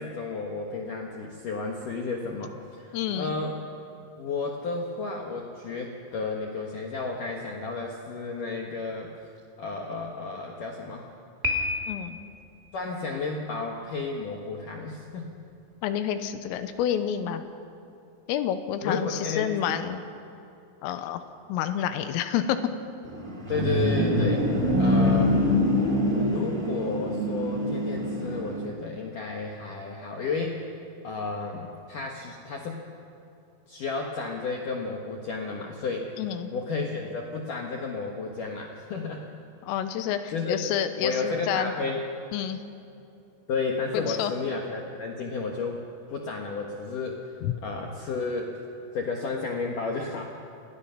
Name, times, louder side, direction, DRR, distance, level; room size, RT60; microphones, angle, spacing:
voice 1, 0.0-3.6 4.2-9.1 9.6-11.1 12.7-15.3 18.8-19.7 23.5-24.5 24.8-25.4 26.2-30.6 31.0-32.8 33.7-36.1 36.5-39.3 40.3-40.6 41.0-42.0 43.5-45.8 46.1-47.2 47.6-48.5 48.9-50.3, left 4 dB, 70° left, 0 dB, 2.0 m, -32 dB
voice 2, 2.9-3.3 11.9-12.2 15.8-17.4 18.3-20.0 20.8-21.2 21.5-22.6 36.2-36.5 39.6-41.7 42.3-42.6 43.9-44.3 47.4-47.5, left 10 dB, 85° left, 9 dB, 3.6 m, -29 dB
Piano, 11.4-12.4, left 2 dB, 55° right, 0.5 m, -29 dB
sound 1, 23.0-28.6, equal, 15° right, 1.7 m, -25 dB
28.5 x 19.0 x 5.8 m, 2.7 s
omnidirectional pair, 5.9 m